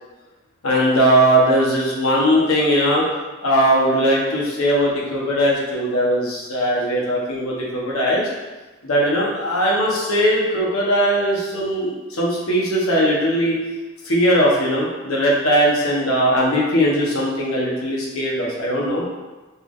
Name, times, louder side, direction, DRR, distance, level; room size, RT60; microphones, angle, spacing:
voice 1, 0.6-3.1 3.4-8.3 8.8-13.6 14.0-19.0, equal, 80° left, -4 dB, 1.0 m, -19 dB
4.2 x 3.5 x 2.5 m, 1.2 s
head